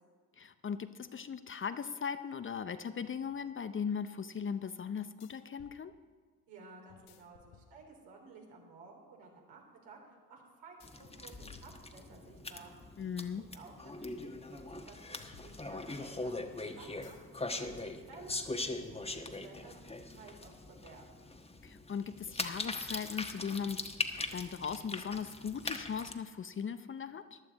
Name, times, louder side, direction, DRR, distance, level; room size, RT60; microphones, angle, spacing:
voice 1, 0.4-5.9 13.0-13.4 21.6-23.8 24.3-27.4, left 6 dB, 30° left, 11 dB, 0.6 m, -38 dB
sound 1, 2.8-2.9 5.2-5.8 6.9-8.2 10.8-12.5 15.2-16.2 17.0-17.3 17.7-19.0, left 6 dB, 65° left, 1.1 m, -60 dB
voice 2, 6.5-12.7 13.4-17.2 17.5-21.2, right 4 dB, 70° right, 0 dB, 3.4 m, -54 dB
sound 2, 10.8-26.1, left 2 dB, 15° left, 1.2 m, -41 dB
14.5 x 11.5 x 4.1 m, 1.5 s
hypercardioid pair, 55°, 41 cm